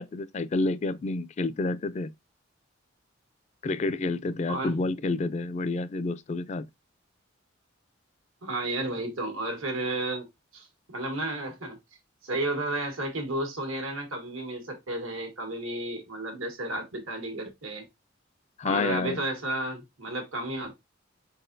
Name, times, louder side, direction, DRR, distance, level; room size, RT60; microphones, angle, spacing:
voice 1, 0.0-2.1 3.6-6.7 18.6-19.2, left 3 dB, 35° left, 0.3 m, -29 dB
voice 2, 8.4-10.3 10.5-11.8 12.2-17.8 18.6-20.7, right 1 dB, 90° right, 1.6 m, -32 dB
4.4 x 4.0 x 2.5 m
head